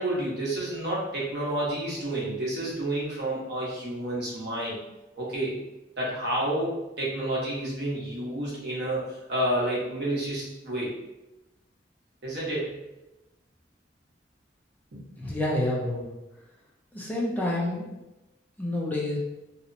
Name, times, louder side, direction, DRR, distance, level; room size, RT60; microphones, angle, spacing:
voice 1, 0.0-4.8 5.2-5.5 6.0-10.9 12.2-12.8 14.9-15.0, right 1 dB, 65° right, -5 dB, 0.9 m, -30 dB
voice 2, 15.2-16.1 16.9-17.9 18.6-19.2, left 1 dB, 10° left, -4 dB, 0.4 m, -28 dB
2.8 x 2.0 x 2.5 m, 0.99 s
head